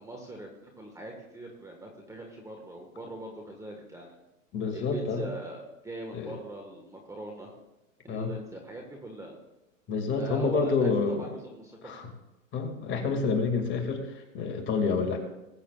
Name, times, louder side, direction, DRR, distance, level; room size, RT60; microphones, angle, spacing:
voice 1, 0.0-4.1 4.7-7.5 8.0-9.4 10.2-11.9, right 1 dB, 10° right, 1 dB, 1.4 m, -41 dB
voice 2, 4.5-5.3 6.1-6.4 8.1-8.3 9.9-11.3 11.8-12.1 12.5-15.2, left 4 dB, 30° left, 4 dB, 2.1 m, -28 dB
20.5 x 8.4 x 2.4 m, 0.98 s
hypercardioid pair, 120°, 39 cm